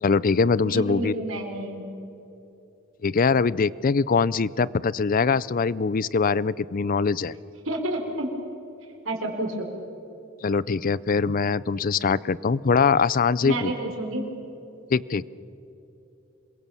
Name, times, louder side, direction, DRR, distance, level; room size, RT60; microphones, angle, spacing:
voice 1, 0.0-1.1 3.0-7.3 10.4-13.7 14.9-15.2, left 5 dB, 45° left, 21 dB, 0.5 m, -22 dB
voice 2, 0.6-1.8 7.6-8.3 9.0-9.7 13.4-14.2, right 1 dB, 80° right, 2 dB, 4.2 m, -29 dB
27.0 x 22.0 x 7.1 m, 3.0 s
head